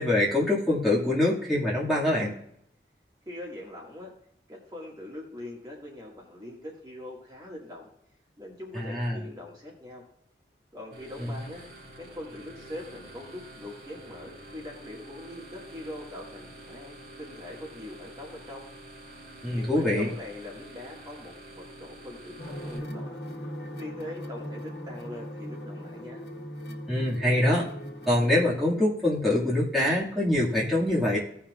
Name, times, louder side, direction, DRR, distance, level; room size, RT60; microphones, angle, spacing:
voice 1, 0.0-2.3 8.7-9.2 19.4-20.1 26.9-27.7 28.1-31.2, left 1 dB, ahead, -8 dB, 2.0 m, -24 dB
voice 2, 3.3-4.1 4.5-7.9 8.4-10.0 10.7-11.6 12.0-18.7 19.5-23.2 23.7-26.2, left 1 dB, 20° right, -4 dB, 1.8 m, -42 dB
sound 1, 10.9-22.8, right 1 dB, 60° right, 3.0 m, -47 dB
sound 2, 22.4-28.2, equal, 75° left, 1.5 m, -39 dB
17.0 x 5.8 x 2.4 m, 0.73 s
head